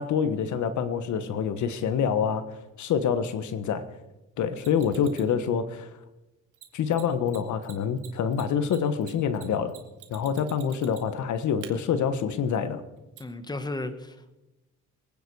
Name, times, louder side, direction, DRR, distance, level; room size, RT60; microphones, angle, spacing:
voice 1, 0.0-2.5 2.8-3.8 4.4-5.9 6.7-9.7 10.1-12.8, left 7 dB, 75° left, 11 dB, 1.3 m, -26 dB
Mechanisms, 4.6-5.3 6.5-6.6 6.9-7.0 7.3-7.4 7.6-11.2 11.6-11.7 13.2-13.3, right 12 dB, 90° right, 2.3 m, -47 dB
voice 2, 13.2-14.4, left 2 dB, 15° left, 9 dB, 1.5 m, -35 dB
24.5 x 9.5 x 4.8 m, 1.0 s
cardioid pair, 90°, 30 cm